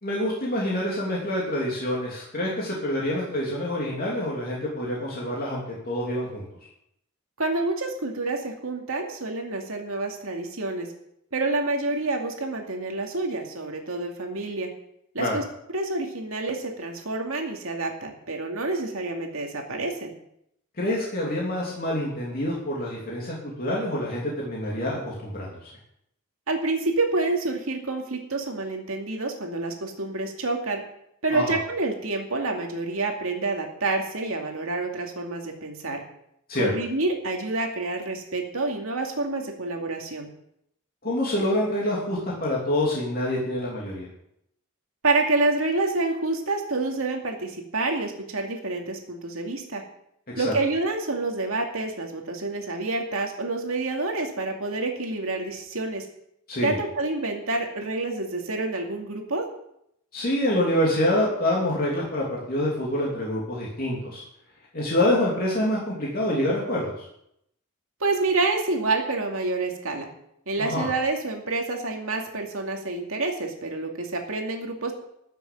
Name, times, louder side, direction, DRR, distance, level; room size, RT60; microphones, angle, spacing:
voice 1, 0.0-6.4 15.2-15.3 20.8-25.7 31.3-31.6 36.5-36.7 41.0-44.1 50.3-50.5 56.5-56.8 60.1-64.2 64.7-67.0 70.6-70.9, left 1 dB, 40° left, -4 dB, 2.9 m, -26 dB
voice 2, 7.4-10.9 11.3-14.7 15.1-15.4 15.7-20.1 26.5-30.8 31.2-36.0 36.6-40.3 45.0-49.8 50.4-56.1 56.6-59.5 68.0-70.1 70.5-74.9, right 3 dB, 70° right, 2 dB, 2.4 m, -28 dB
13.5 x 6.9 x 8.6 m, 0.76 s
head